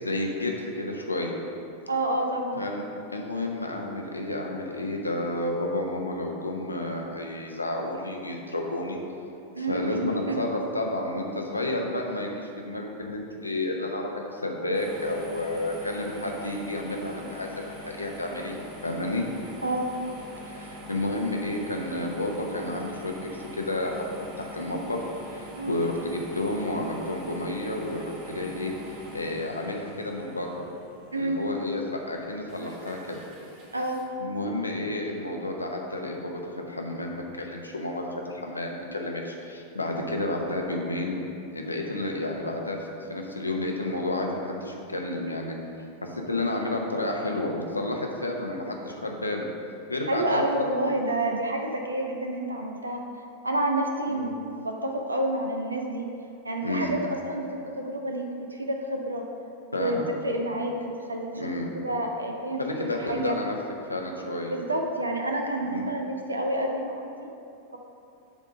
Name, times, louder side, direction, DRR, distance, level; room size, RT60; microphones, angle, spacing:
voice 1, 0.0-1.3 2.6-2.8 3.1-9.0 9.6-19.2 20.4-25.0 25.3-30.6 31.1-33.2 34.2-41.2 41.5-45.6 46.0-49.5 49.9-50.6 54.1-54.3 56.6-56.9 59.7-60.1 61.3-61.7 62.6-63.6 63.9-64.5 65.6-65.9, left 1 dB, 80° left, 1 dB, 0.8 m, -31 dB
voice 2, 1.9-2.6 9.5-10.4 19.6-19.9 25.6-25.8 31.1-31.4 33.7-34.1 39.9-40.1 46.4-46.6 50.1-53.1 53.4-56.1 56.4-57.0 57.3-59.2 59.7-60.0 60.2-61.3 61.7-63.4 64.5-67.3, right 1 dB, 80° right, 2 dB, 0.7 m, -29 dB
sound 1, 14.7-34.0, equal, 45° right, 1.8 m, -44 dB
7.3 x 3.7 x 6.3 m, 2.7 s
figure-of-eight pair, 90°, 0 cm